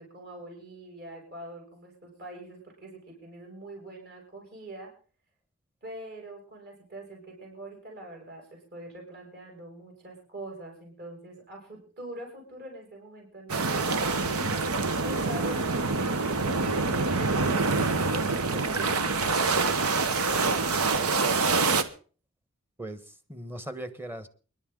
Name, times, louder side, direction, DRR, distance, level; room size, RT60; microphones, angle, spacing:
voice 1, 0.0-4.9 5.8-13.8 15.0-21.6, right 1 dB, 45° right, -1 dB, 6.4 m, -44 dB
sound 1, 13.5-21.8, right 3 dB, 85° right, 1.2 m, -26 dB
voice 2, 22.8-24.3, right 1 dB, 10° right, 12 dB, 1.1 m, -39 dB
28.5 x 11.0 x 3.8 m, 0.39 s
head